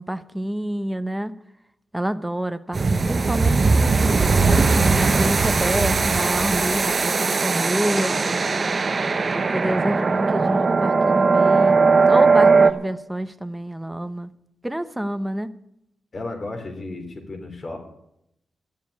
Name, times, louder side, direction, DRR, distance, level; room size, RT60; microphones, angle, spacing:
voice 1, 0.0-1.3 1.9-3.9 4.5-8.1 9.3-14.3 14.6-15.5, right 1 dB, 10° right, 11 dB, 0.9 m, -27 dB
sound 1, 2.7-12.7, right 4 dB, 45° right, 0.8 m, -19 dB
sound 2, 7.9-9.9, left 1 dB, 30° left, 4.0 m, -39 dB
voice 2, 16.1-17.8, left 2 dB, 50° left, 4 dB, 3.5 m, -33 dB
12.5 x 7.1 x 9.6 m, 0.80 s
cardioid pair, 80°, 0 cm